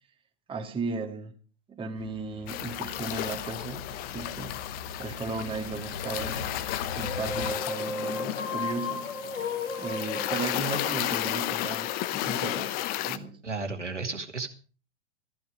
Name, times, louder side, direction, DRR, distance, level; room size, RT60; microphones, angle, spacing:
voice 1, 0.5-1.4 1.7-3.8 4.1-6.5 6.9-9.1 9.8-13.4, right 4 dB, 15° right, 2.0 m, -36 dB
sound 1, 2.0-7.6, left 3 dB, 55° left, 3.2 m, -41 dB
sound 2, 2.5-13.2, left 14 dB, 25° left, 0.8 m, -33 dB
sound 3, 7.0-11.7, left 3 dB, 85° left, 2.8 m, -35 dB
voice 2, 13.4-14.5, right 3 dB, 80° right, 2.5 m, -33 dB
14.5 x 14.5 x 5.0 m
figure-of-eight pair, 105°, 35 cm